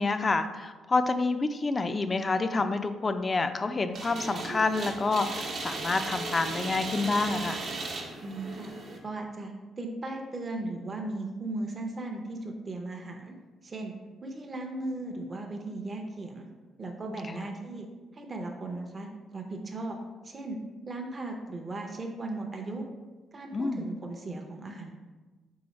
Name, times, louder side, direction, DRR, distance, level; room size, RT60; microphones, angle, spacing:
voice 1, 0.0-7.7 17.3-17.5 23.5-23.8, left 3 dB, 30° left, 10 dB, 0.3 m, -28 dB
sound 1, 3.9-9.0, right 3 dB, 65° right, 0.8 m, -36 dB
voice 2, 8.2-8.7 9.0-13.3 13.6-13.9 14.2-16.5 16.8-17.9 18.1-20.0 20.2-20.6 20.8-22.8 23.3-24.9, right 2 dB, 35° right, 2 dB, 0.6 m, -37 dB
4.7 x 3.4 x 3.1 m, 1.3 s
cardioid pair, 90°, 0 cm